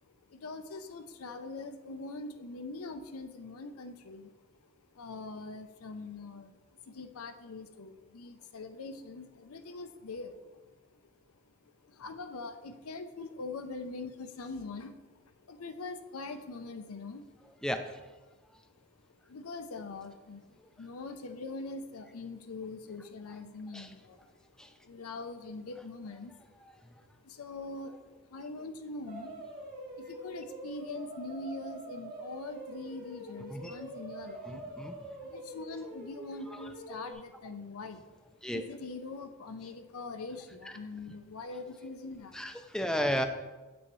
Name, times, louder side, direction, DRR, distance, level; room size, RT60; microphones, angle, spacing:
voice 1, 0.0-11.0 11.2-17.7 18.2-18.4 18.7-18.9 19.2-26.5 26.7-26.8 27.2-29.7 30.0-34.6 35.0-38.1 38.4-42.8, left 3 dB, 85° left, 8 dB, 0.6 m, -43 dB
sound 1, 29.1-37.1, right 1 dB, 40° right, 1.5 m, -45 dB
voice 2, 34.5-34.9 38.4-38.6 42.3-43.3, equal, 5° left, 6 dB, 0.3 m, -33 dB
7.7 x 6.2 x 3.1 m, 1.2 s
head